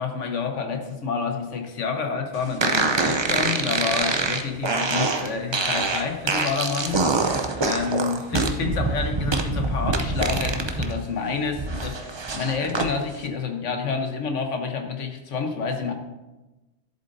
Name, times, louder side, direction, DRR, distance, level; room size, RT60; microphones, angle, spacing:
voice 1, 0.0-7.0 7.6-15.9, left 5 dB, 75° left, 5 dB, 1.3 m, -28 dB
sound 1, 2.6-10.9 11.3-12.9, right 3 dB, 35° right, 0.4 m, -25 dB
11.0 x 7.4 x 2.6 m, 1.1 s
omnidirectional pair, 1.3 m